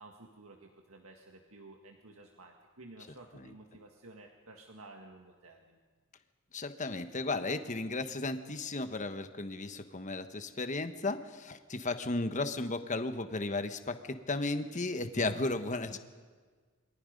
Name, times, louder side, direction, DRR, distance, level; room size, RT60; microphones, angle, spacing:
voice 1, 0.0-5.8 14.8-15.0, right 2 dB, 75° right, 2 dB, 1.9 m, -53 dB
voice 2, 6.5-16.0, left 2 dB, 35° left, 9 dB, 1.2 m, -34 dB
28.0 x 23.0 x 5.3 m, 1.5 s
head